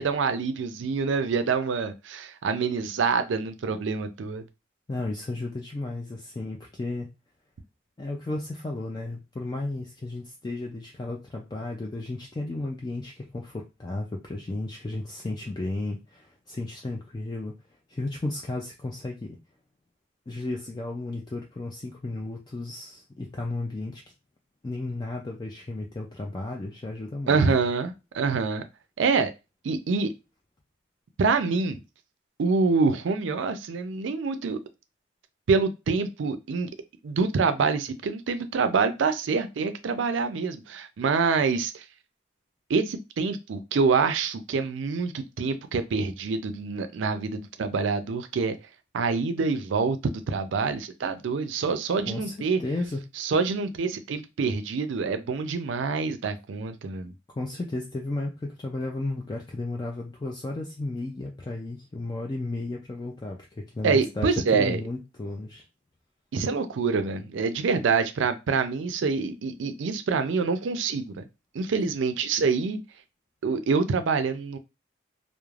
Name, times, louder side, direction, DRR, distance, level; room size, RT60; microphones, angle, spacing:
voice 1, 0.0-4.4 27.3-28.6 29.0-29.3 29.6-30.1 31.2-31.8 32.4-34.6 35.5-36.7 37.0-41.8 42.7-48.6 48.9-52.6 53.2-57.1 63.8-64.8 66.3-71.2 71.5-72.8 73.4-74.6, right 4 dB, 75° right, 0.4 m, -26 dB
voice 2, 4.9-7.1 8.0-17.6 17.9-19.4 20.3-24.0 24.6-27.7 52.1-52.3 52.6-53.0 57.4-65.6, left 2 dB, 20° left, 0.3 m, -34 dB
3.1 x 2.0 x 2.4 m
head